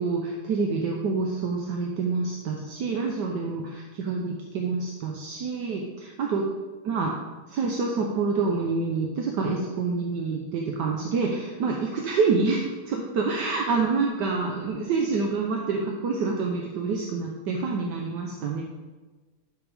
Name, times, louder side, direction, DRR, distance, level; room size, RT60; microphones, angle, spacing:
voice 1, 0.0-6.5 6.8-7.1 7.5-18.6, right 4 dB, 65° right, 0 dB, 1.2 m, -27 dB
11.5 x 6.1 x 3.4 m, 1.3 s
omnidirectional pair, 2.4 m